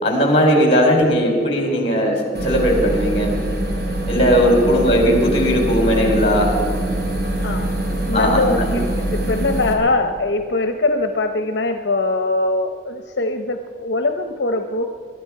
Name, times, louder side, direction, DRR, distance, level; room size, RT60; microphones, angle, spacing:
voice 1, 0.0-3.3 4.1-6.5 8.1-8.8, equal, 35° left, 1 dB, 3.8 m, -17 dB
sound 1, 2.3-9.7, right 1 dB, 60° right, 3.1 m, -23 dB
voice 2, 7.4-7.8 8.1-14.9, left 2 dB, 70° left, 6 dB, 0.8 m, -22 dB
22.0 x 13.0 x 4.8 m, 2.2 s
head